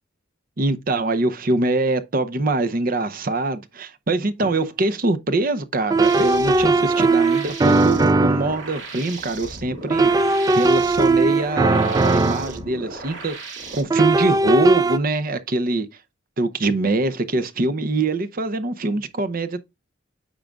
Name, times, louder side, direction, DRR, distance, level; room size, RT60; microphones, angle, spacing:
voice 1, 0.6-10.1 10.5-13.4 13.7-15.9 16.4-19.6, right 2 dB, 50° right, 0.7 m, -23 dB
sound 1, 4.4-4.5 5.9-8.6 9.9-12.6 13.9-15.0, right 3 dB, 20° right, 0.3 m, -18 dB
sound 2, 6.0-13.8, right 2 dB, 70° right, 2.4 m, -36 dB
9.0 x 4.9 x 2.3 m
head